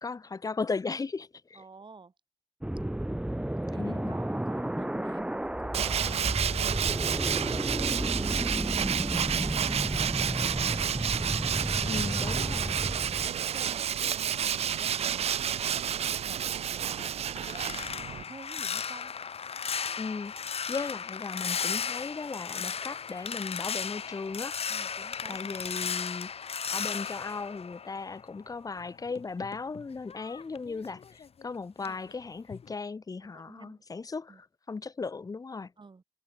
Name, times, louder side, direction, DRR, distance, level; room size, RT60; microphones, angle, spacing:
voice 1, 0.0-1.6 3.8-4.1 11.8-12.8 20.0-20.3 20.7-24.6 25.3-26.3 26.7-35.7, left 4 dB, 35° left, 0.6 m, -36 dB
voice 2, 1.5-2.1 3.6-8.0 8.8-10.9 11.4-12.7 13.1-17.7 18.1-19.1 24.7-25.7 33.3-33.8 34.3-34.4 35.8-36.0, right 4 dB, 50° right, 3.9 m, -51 dB
sound 1, 2.6-13.3, right 1 dB, 10° right, 0.8 m, -32 dB
Tools, 5.7-18.2, right 9 dB, 90° right, 0.4 m, -30 dB
sound 2, 16.8-28.5 28.8-31.5 31.8-32.1 32.5-32.7, left 6 dB, 75° left, 1.4 m, -36 dB
cardioid pair, 70°, 10 cm